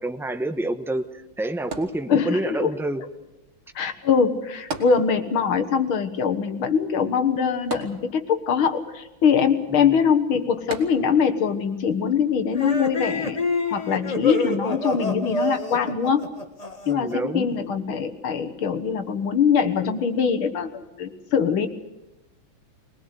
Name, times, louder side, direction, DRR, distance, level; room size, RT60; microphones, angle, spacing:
voice 1, 0.0-3.0 9.7-10.0 16.8-17.5, right 1 dB, ahead, 7 dB, 0.5 m, -28 dB
sound 1, 1.7-2.6 4.7-5.6 5.9-6.0 7.7-8.5 10.7-11.4 12.1-12.2, right 3 dB, 90° right, 2.9 m, -36 dB
voice 2, 2.1-2.7 3.8-13.4 13.7-16.2 16.9-20.7 21.0-21.7, left 6 dB, 85° left, 8 dB, 2.3 m, -22 dB
sound 2, 12.5-17.1, left 2 dB, 20° left, 1.4 m, -27 dB
22.5 x 19.5 x 8.2 m, 1.0 s
omnidirectional pair, 2.2 m